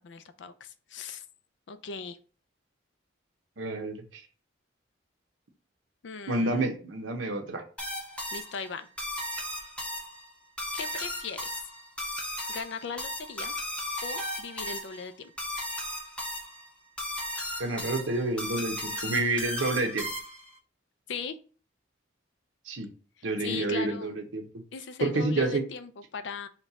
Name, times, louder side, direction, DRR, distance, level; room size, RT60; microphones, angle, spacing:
voice 1, 0.0-1.2 1.7-2.2 6.0-6.7 8.3-8.9 10.7-11.7 12.5-13.5 14.0-15.3 21.1-21.4 23.4-24.2 24.7-26.5, left 5 dB, 70° left, 11 dB, 0.4 m, -38 dB
voice 2, 3.6-4.2 6.3-7.6 17.6-20.1 22.7-22.9 23.2-24.5 25.0-25.6, right 2 dB, 90° right, 4 dB, 0.9 m, -29 dB
sound 1, 7.8-20.5, left 1 dB, 5° left, 0.7 m, -36 dB
4.3 x 2.3 x 4.1 m, 0.39 s
head